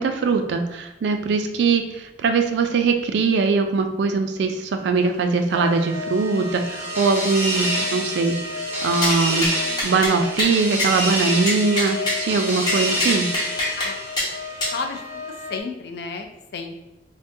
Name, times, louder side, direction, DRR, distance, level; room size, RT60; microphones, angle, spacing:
voice 1, 0.0-8.4 8.8-9.5 9.8-13.3, right 4 dB, 75° right, 6 dB, 0.3 m, -21 dB
sound 1, 5.5-15.6, left 5 dB, 85° left, 0.7 m, -34 dB
sound 2, 5.7-14.8, right 1 dB, 15° right, 0.6 m, -28 dB
sound 3, 9.0-9.2 9.4-9.5 9.8-10.1 10.4-10.5 10.8-10.9 11.5-12.2 12.7-13.9 14.2-14.3 14.6-14.8, left 1 dB, 25° left, 0.8 m, -24 dB
voice 2, 14.7-15.0 15.5-16.7, left 4 dB, 60° left, 5 dB, 0.3 m, -31 dB
3.6 x 2.2 x 2.6 m, 0.94 s
head